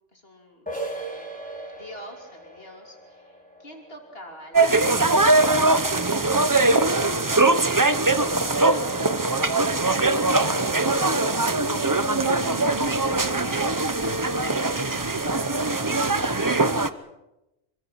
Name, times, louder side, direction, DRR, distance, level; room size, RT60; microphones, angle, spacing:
voice 1, 0.1-5.4 5.8-10.2, left 1 dB, 55° left, 1 dB, 3.2 m, -45 dB
sound 1, 0.7-6.1, right 2 dB, 5° left, 4.3 m, -39 dB
sound 2, 4.5-16.9, right 2 dB, 20° right, 0.7 m, -21 dB
voice 2, 14.3-16.7, right 2 dB, 85° right, 4 dB, 2.9 m, -42 dB
25.5 x 23.0 x 5.8 m, 0.96 s
omnidirectional pair, 1.2 m